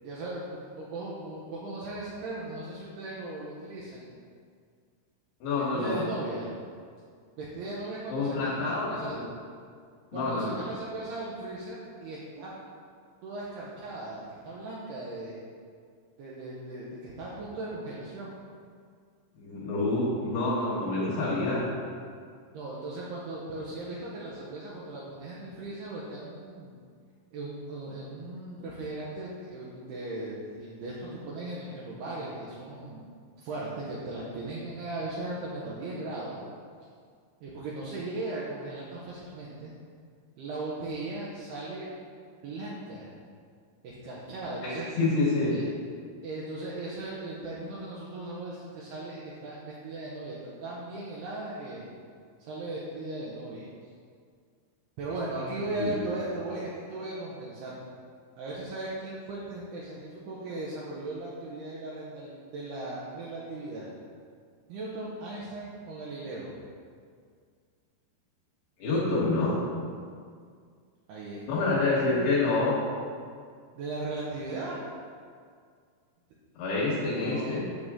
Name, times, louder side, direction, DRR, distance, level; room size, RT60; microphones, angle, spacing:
voice 1, 0.0-4.1 5.6-6.5 7.4-9.1 10.1-12.5 13.2-15.4 16.2-18.4 22.5-26.8 27.3-33.1 33.4-36.4 37.4-39.7 40.4-41.9 42.4-43.1 43.8-44.9 45.5-45.7 46.2-51.9 52.4-53.7 55.0-57.8 58.4-63.9 64.7-66.5 71.1-72.2 73.8-74.8 77.1-77.6, right 2 dB, 80° right, -6 dB, 2.4 m, -37 dB
voice 2, 5.4-6.0 8.1-9.2 10.1-10.6 19.4-21.6 44.6-45.6 55.8-55.9 68.8-69.6 71.5-72.8 76.6-77.6, left 3 dB, 70° left, -6 dB, 3.4 m, -27 dB
8.6 x 6.5 x 3.7 m, 2.1 s
omnidirectional pair, 5.8 m